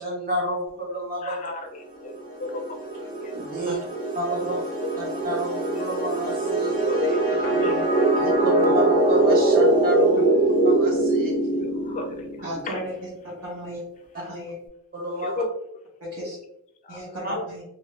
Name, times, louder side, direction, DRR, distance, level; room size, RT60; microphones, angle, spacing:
voice 1, 0.0-1.5 3.3-3.8 4.1-4.6 5.0-6.7 8.1-10.2 10.6-11.6 14.9-15.4 17.2-17.3, equal, 40° right, -1 dB, 0.9 m, -30 dB
voice 2, 1.2-2.1 2.4-2.6 3.2-3.3 4.4-4.5 4.8-4.9 6.8-7.7 8.3-8.7 11.6-12.2 12.7-12.8 15.2-15.5 16.8-17.0 17.4-17.5, left 3 dB, 35° left, 4 dB, 0.4 m, -34 dB
sound 1, 2.1-12.6, right 2 dB, 20° right, 1.2 m, -22 dB
voice 3, 12.4-12.9 13.4-13.8 14.1-14.5 16.0-16.4 16.9-17.6, equal, 75° right, -8 dB, 1.1 m, -35 dB
2.8 x 2.6 x 3.2 m, 0.80 s
head